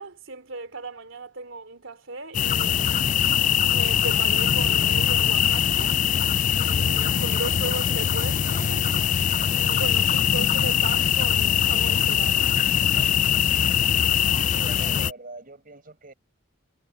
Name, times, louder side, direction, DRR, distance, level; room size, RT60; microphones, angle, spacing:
voice 1, 0.0-3.1 3.7-6.0 6.5-8.9 9.5-12.6, right 3 dB, 75° right, 3.1 m, -36 dB
sound 1, 2.3-15.1, left 9 dB, 40° left, 0.3 m, -22 dB
voice 2, 14.3-16.1, right 2 dB, 45° right, 5.3 m, -43 dB
head